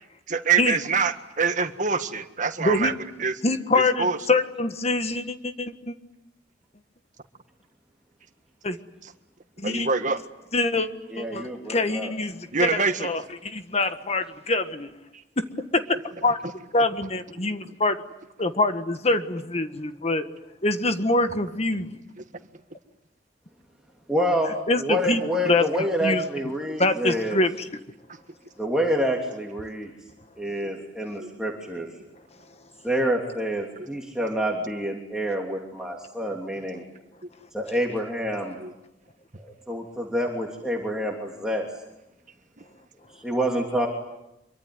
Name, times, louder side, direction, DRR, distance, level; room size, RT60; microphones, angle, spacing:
voice 1, 0.3-2.9 3.2-3.4 3.7-4.2 9.0-9.1 9.6-10.2 12.5-13.1 15.9-16.3 31.2-31.3 37.2-37.3 38.6-38.7, right 5 dB, 45° right, 8 dB, 1.7 m, -25 dB
voice 2, 2.6-2.9 3.4-5.9 8.6-8.8 9.6-9.9 10.5-10.9 11.2-11.4 11.7-12.7 13.0-13.2 13.5-14.9 15.4-15.5 15.7-16.4 16.7-18.0 18.4-20.2 20.6-21.9 24.7-25.2 25.5-25.6 26.0-26.2 26.8-27.5, left 2 dB, 35° left, 9 dB, 1.6 m, -24 dB
voice 3, 11.1-12.1 24.1-27.4 28.6-29.9 30.4-31.9 32.8-36.8 37.5-38.6 39.4-41.7 43.2-43.9, equal, 5° right, -1 dB, 3.1 m, -27 dB
26.5 x 23.5 x 9.6 m, 0.88 s
head